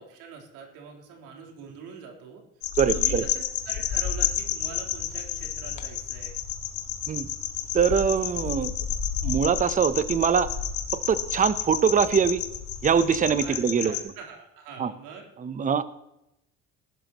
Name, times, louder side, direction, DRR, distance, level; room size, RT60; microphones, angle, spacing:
voice 1, 0.0-2.4 2.8-6.3 13.4-15.3, right 5 dB, 85° right, 0 dB, 4.0 m, -43 dB
sound 1, 2.6-14.0, left 9 dB, 70° left, 1.9 m, -30 dB
voice 2, 2.7-3.2 7.1-7.3 7.7-8.7 9.2-10.5 11.1-12.4 12.8-14.0 14.8-14.9 15.4-15.8, right 7 dB, 25° right, 14 dB, 0.8 m, -23 dB
sound 2, 3.6-13.6, left 2 dB, 20° left, 3.2 m, -48 dB
19.5 x 12.0 x 3.1 m, 0.88 s
cardioid pair, 130°, 30 cm